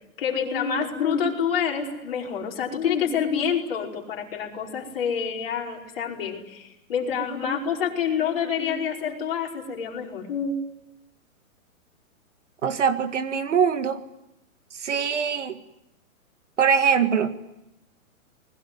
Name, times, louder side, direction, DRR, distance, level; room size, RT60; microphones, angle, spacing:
voice 1, 0.2-10.5, left 7 dB, 45° left, 0 dB, 5.2 m, -27 dB
voice 2, 12.6-14.0 14.8-15.6 16.6-17.3, right 7 dB, 60° right, 10 dB, 2.0 m, -22 dB
29.0 x 21.5 x 9.4 m, 0.88 s
hypercardioid pair, 180°, 42 cm